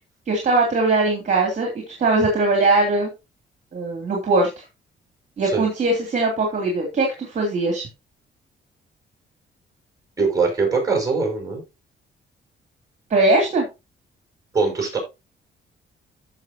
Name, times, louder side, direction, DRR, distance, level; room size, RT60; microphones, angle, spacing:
voice 1, 0.3-3.1 3.7-4.5 5.4-7.9 13.1-13.6, right 2 dB, 40° right, 1 dB, 3.0 m, -20 dB
voice 2, 10.2-11.6 14.5-15.0, right 4 dB, 20° right, 0 dB, 6.2 m, -21 dB
14.0 x 5.9 x 2.9 m, 0.25 s
cardioid pair, 140°, 19 cm